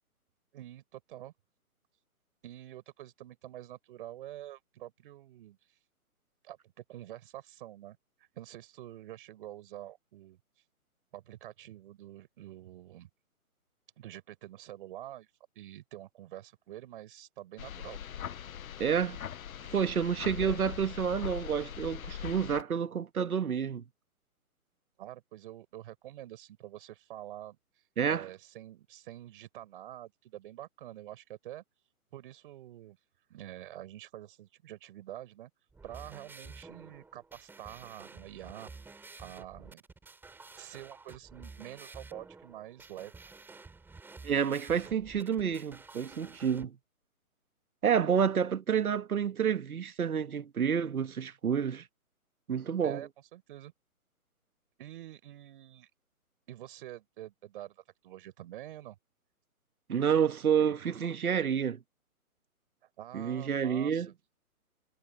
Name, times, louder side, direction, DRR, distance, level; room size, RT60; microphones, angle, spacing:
voice 1, 0.5-1.3 2.4-5.8 6.4-6.6 6.9-8.0 8.3-10.4 11.1-13.1 14.0-15.3 15.5-18.0 20.4-20.6 25.0-27.6 28.1-31.6 32.1-33.0 33.3-35.5 35.8-38.7 39.2-39.8 40.6-43.2 52.8-53.7 54.8-55.9 56.5-59.0 63.0-64.1, right 13 dB, 35° right, 4.9 m, -47 dB
sound 1, 17.6-22.6, left 9 dB, 70° left, 0.9 m, -41 dB
voice 2, 18.8-19.2 19.7-23.8 28.0-28.2 44.2-46.8 47.8-51.8 52.5-53.1 59.9-61.8 63.1-64.1, right 7 dB, 75° right, 1.8 m, -29 dB
sound 2, 35.7-46.7, right 3 dB, 5° right, 5.2 m, -51 dB
hypercardioid pair, 155°, 44 cm